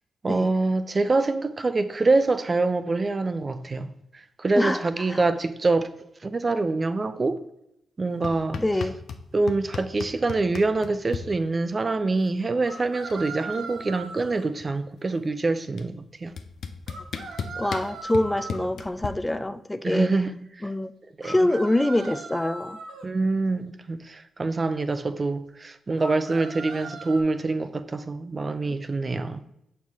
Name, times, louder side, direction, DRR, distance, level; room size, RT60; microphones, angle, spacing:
voice 1, 0.2-5.9 6.2-7.4 8.0-8.6 9.3-16.3 19.8-20.3 20.6-20.7 21.2-21.4 23.0-29.4, right 3 dB, 40° right, 0.5 m, -25 dB
voice 2, 4.5-5.2 8.6-9.0 13.6-13.7 17.5-20.1 20.6-20.9 21.2-22.8, left 1 dB, 15° left, 0.4 m, -25 dB
sound 1, 8.2-9.2 9.5-11.2 12.5-12.6 12.8-13.3 13.5-14.9 15.8-15.9 16.4-19.1, left 6 dB, 65° left, 0.5 m, -34 dB
sound 2, 9.7-9.8 12.6-14.5 16.9-18.7 21.2-23.1 26.0-27.2, right 3 dB, 70° right, 0.9 m, -39 dB
6.9 x 4.4 x 3.6 m
hypercardioid pair, 40°, 0 cm